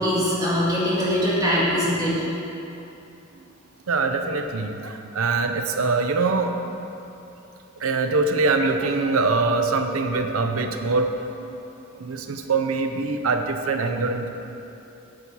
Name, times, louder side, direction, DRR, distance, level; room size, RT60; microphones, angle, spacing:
voice 1, 0.0-2.1, equal, 20° right, -8 dB, 2.2 m, -22 dB
voice 2, 3.9-6.5 7.8-11.6 12.0-14.3, right 3 dB, 90° right, 6 dB, 0.7 m, -23 dB
8.8 x 7.4 x 4.6 m, 2.9 s
head